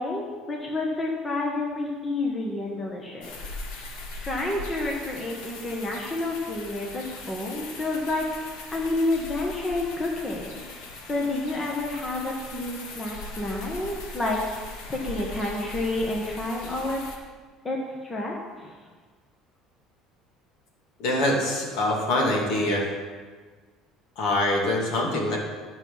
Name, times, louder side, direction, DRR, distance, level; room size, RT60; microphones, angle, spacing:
voice 1, 0.0-3.3 4.2-8.2 8.7-14.6 14.9-17.0 17.6-18.8, left 2 dB, 15° left, -1 dB, 1.2 m, -29 dB
sound 1, 3.2-17.2, left 3 dB, 85° left, 1.8 m, -40 dB
voice 2, 21.0-22.9 24.2-25.4, left 1 dB, 65° left, -1 dB, 2.5 m, -24 dB
11.5 x 6.2 x 5.5 m, 1.5 s
cardioid pair, 160°, 0 cm